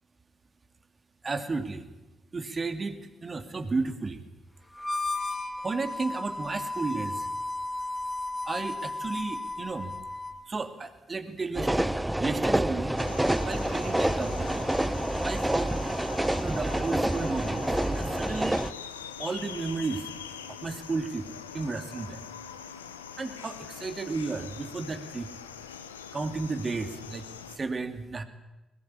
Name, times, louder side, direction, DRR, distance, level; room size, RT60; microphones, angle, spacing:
voice 1, 1.2-1.9 2.3-4.2 5.6-7.3 8.4-9.9 10.5-13.0 13.4-14.6 15.2-15.8 16.4-17.7 18.0-18.6 19.2-20.0 20.5-21.3 21.5-22.2 23.2-25.3 26.1-27.2 27.5-28.2, right 3 dB, 35° right, 8 dB, 2.9 m, -33 dB
Harmonica, 4.7-10.4, left 2 dB, 10° left, 3.2 m, -34 dB
sound 1, 11.5-18.7, right 1 dB, 10° right, 1.1 m, -28 dB
sound 2, 13.0-27.6, left 7 dB, 85° left, 1.2 m, -43 dB
22.0 x 20.5 x 8.7 m, 1.0 s
figure-of-eight pair, 40°, 0 cm